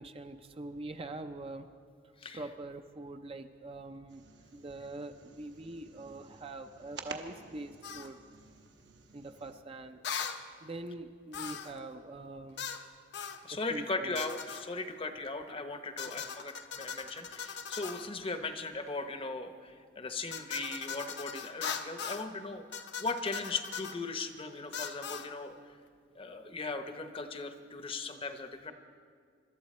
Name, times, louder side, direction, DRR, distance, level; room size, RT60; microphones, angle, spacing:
voice 1, 0.0-1.7 2.3-4.2 4.5-8.2 9.1-10.0 10.6-12.7 13.7-14.2 16.1-16.2, right 2 dB, 30° right, 7 dB, 0.5 m, -44 dB
sound 1, 4.1-9.6, right 4 dB, 65° right, 1.1 m, -51 dB
sound 2, 7.8-8.1 10.0-10.4 11.3-11.8 12.6-12.8 13.1-13.4 14.1-14.7 16.0-18.1 20.3-22.3 22.7-24.0 24.7-25.3, left 7 dB, 60° left, 0.8 m, -40 dB
voice 2, 13.4-25.8 26.1-28.7, left 3 dB, 30° left, 8 dB, 0.8 m, -38 dB
25.0 x 12.5 x 4.3 m, 2.1 s
head